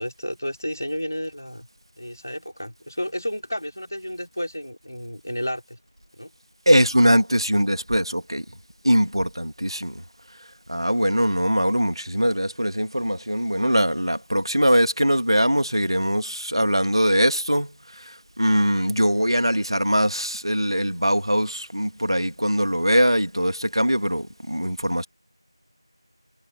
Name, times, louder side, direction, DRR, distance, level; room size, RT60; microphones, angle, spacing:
voice 1, 0.0-1.7 2.0-5.8 6.2-6.3, equal, 35° left, 5.4 m, -31 dB
voice 2, 6.7-8.4 8.8-10.0 10.7-25.1, equal, 70° right, 2.9 m, -22 dB
figure-of-eight pair, 180°, 3 cm